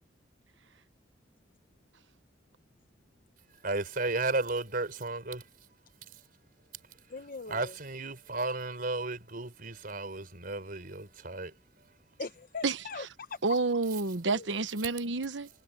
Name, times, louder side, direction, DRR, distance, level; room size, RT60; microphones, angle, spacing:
voice 1, 3.6-5.5 6.1-6.2 7.5-11.5, right 2 dB, 50° right, 4.8 m, -34 dB
voice 2, 7.1-7.7 12.2-13.4 14.3-14.5, left 4 dB, 50° left, 1.0 m, -41 dB
voice 3, 13.4-15.5, right 3 dB, 85° right, 1.1 m, -29 dB
head